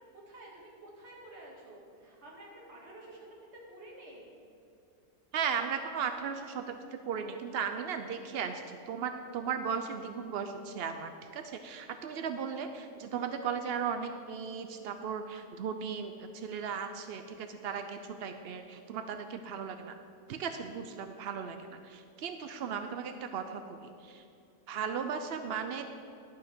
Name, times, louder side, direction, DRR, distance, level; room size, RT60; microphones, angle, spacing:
voice 1, 0.1-3.3 3.5-4.4, right 1 dB, 45° right, -4 dB, 2.3 m, -50 dB
voice 2, 5.3-20.0 20.3-24.2 24.7-25.8, right 6 dB, 80° right, 7 dB, 0.5 m, -36 dB
12.0 x 5.7 x 6.0 m, 2.6 s
omnidirectional pair, 1.7 m